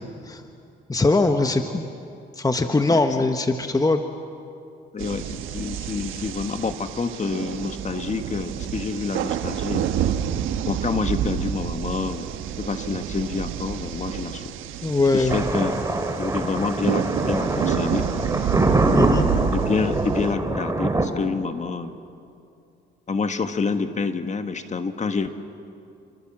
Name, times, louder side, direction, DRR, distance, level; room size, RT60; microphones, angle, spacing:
voice 1, 0.9-1.8 2.4-4.0 14.8-15.5 17.6-17.7 18.9-19.3, left 3 dB, 20° left, 6 dB, 1.4 m, -21 dB
voice 2, 2.9-3.3 4.9-9.9 10.7-12.3 12.6-14.5 15.1-15.9 16.1-18.1 19.5-21.9 23.1-25.3, left 4 dB, 35° left, 8 dB, 1.7 m, -28 dB
sound 1, 5.0-20.3, right 9 dB, 90° right, 1.3 m, -29 dB
Thunder, 15.3-21.0, right 2 dB, 15° right, 2.8 m, -24 dB
29.0 x 24.5 x 7.5 m, 2.5 s
cardioid pair, 90°, 20 cm